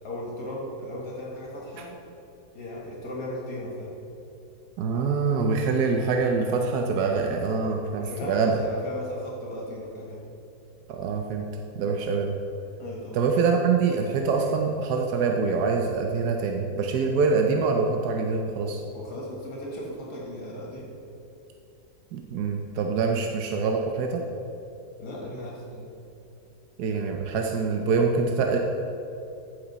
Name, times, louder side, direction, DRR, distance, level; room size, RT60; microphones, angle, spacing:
voice 1, 0.0-1.9 2.5-3.9 8.0-10.2 12.8-13.2 18.9-20.9 23.0-23.1 25.0-25.9, left 1 dB, 75° left, -3 dB, 2.3 m, -36 dB
voice 2, 4.8-8.6 10.9-11.5 11.7-12.3 13.1-18.8 22.1-24.2 26.8-28.6, right 4 dB, 80° right, 2 dB, 1.3 m, -25 dB
14.5 x 6.4 x 4.1 m, 2.8 s
omnidirectional pair, 1.7 m